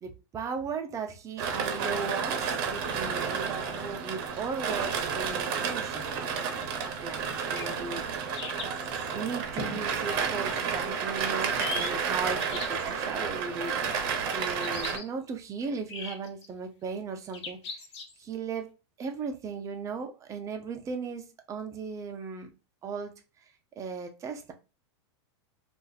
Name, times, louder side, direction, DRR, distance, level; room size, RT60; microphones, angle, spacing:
voice 1, 0.0-6.1 6.8-8.0 9.1-17.8 18.2-22.5 22.8-23.1 23.8-24.5, right 5 dB, 20° right, 0.6 m, -37 dB
sound 1, 1.4-15.0, right 6 dB, 50° right, 0.8 m, -31 dB
sound 2, 7.2-7.7 8.3-9.1 11.2-11.9 12.4-12.9 14.4-15.0 15.9-16.5 17.3-18.2, left 4 dB, 65° left, 1.0 m, -39 dB
Drum, 9.6-11.7, left 3 dB, 25° left, 0.8 m, -44 dB
2.6 x 2.5 x 4.0 m
supercardioid pair, 140°, 15 cm